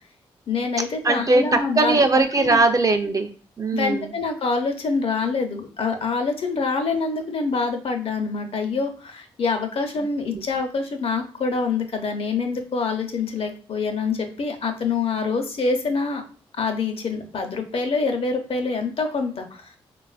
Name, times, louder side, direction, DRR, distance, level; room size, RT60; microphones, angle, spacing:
voice 1, 0.5-2.0 2.4-2.6 3.7-16.2 16.6-19.7, left 4 dB, 60° left, 5 dB, 0.7 m, -25 dB
voice 2, 1.0-3.3 3.6-4.1 10.3-10.4, right 3 dB, 30° right, 6 dB, 0.5 m, -20 dB
3.2 x 2.3 x 2.4 m, 0.40 s
supercardioid pair, 45°, 11 cm